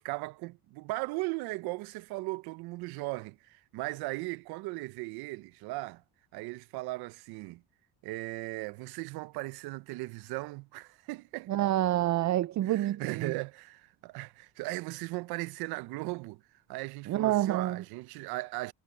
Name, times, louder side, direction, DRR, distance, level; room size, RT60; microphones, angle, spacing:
voice 1, 0.0-6.0 6.3-7.6 8.0-11.5 12.7-16.4 16.7-18.7, right 22 dB, 80° right, 0.7 m, -37 dB
voice 2, 11.5-13.3 17.1-17.8, right 14 dB, 50° right, 0.5 m, -28 dB
supercardioid pair, 80°, 37 cm